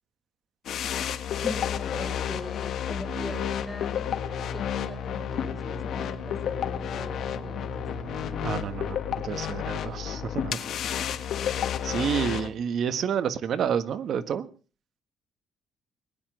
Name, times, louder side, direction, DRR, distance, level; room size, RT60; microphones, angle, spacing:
sound 1, 0.6-12.5, left 9 dB, 60° left, 1.5 m, -31 dB
voice 1, 1.4-4.2 4.5-7.9, left 1 dB, ahead, 5 dB, 2.9 m, -41 dB
sound 2, 3.1-4.1, right 5 dB, 40° right, 3.2 m, -42 dB
sound 3, 4.1-13.6, right 3 dB, 85° right, 4.6 m, -45 dB
voice 2, 8.4-9.0 9.2-10.6 10.9-11.0 11.8-14.5, right 8 dB, 55° right, 13 dB, 1.5 m, -29 dB
20.5 x 10.0 x 6.3 m, 0.38 s
cardioid pair, 130°, 0 cm